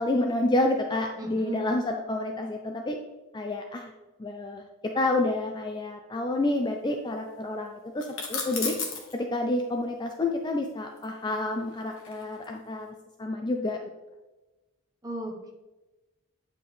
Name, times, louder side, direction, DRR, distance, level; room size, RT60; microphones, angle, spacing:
voice 1, 0.0-3.0 3.3-3.9 4.2-4.7 4.9-8.7 9.1-13.8, left 2 dB, 20° left, 3 dB, 0.4 m, -29 dB
voice 2, 1.2-1.7 15.0-15.5, right 1 dB, 15° right, 1 dB, 0.9 m, -36 dB
sound 1, 8.0-9.1 11.0-12.5, left 5 dB, 60° left, 1.4 m, -34 dB
8.7 x 5.0 x 3.2 m, 1.1 s
head